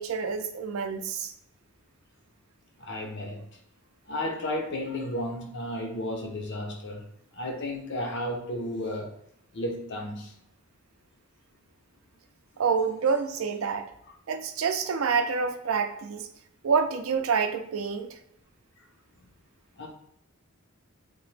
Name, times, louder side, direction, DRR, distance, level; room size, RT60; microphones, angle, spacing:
voice 1, 0.0-1.3 12.6-13.9 14.3-16.3 16.6-18.1, right 5 dB, 80° right, 6 dB, 0.4 m, -27 dB
voice 2, 2.8-3.4 4.1-7.0 7.3-9.1 9.5-10.3 19.2-19.3 19.8-19.9, left 1 dB, 55° left, 1 dB, 0.7 m, -33 dB
2.9 x 2.1 x 3.2 m, 0.75 s
head